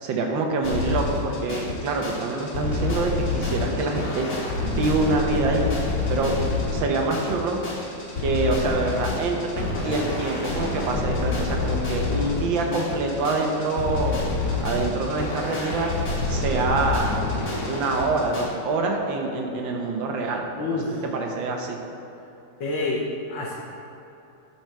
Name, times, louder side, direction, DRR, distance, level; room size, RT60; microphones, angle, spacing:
voice 1, 0.0-5.7 6.1-7.6 8.2-14.2 14.6-15.9 16.3-17.2 17.7-21.8, right 3 dB, 80° right, 1 dB, 1.7 m, -26 dB
sound 1, 0.6-18.4, left 3 dB, 55° left, 1.9 m, -28 dB
voice 2, 20.6-21.0 22.6-23.5, left 2 dB, 80° left, -5 dB, 1.7 m, -28 dB
11.0 x 4.4 x 4.6 m, 2.9 s
omnidirectional pair, 2.0 m